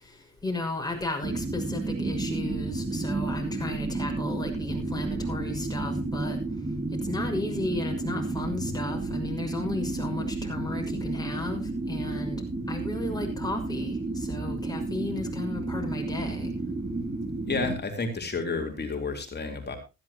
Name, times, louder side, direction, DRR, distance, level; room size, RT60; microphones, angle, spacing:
voice 1, 0.4-6.4 7.0-11.6 11.9-12.4 12.7-16.5, left 2 dB, 15° left, 1 dB, 6.2 m, -34 dB
sound 1, 1.2-17.8, right 2 dB, 25° right, 1.9 m, -31 dB
voice 2, 17.5-19.8, left 4 dB, 35° left, 4 dB, 3.8 m, -31 dB
15.5 x 14.0 x 3.0 m, 0.28 s
cardioid pair, 90°, 30 cm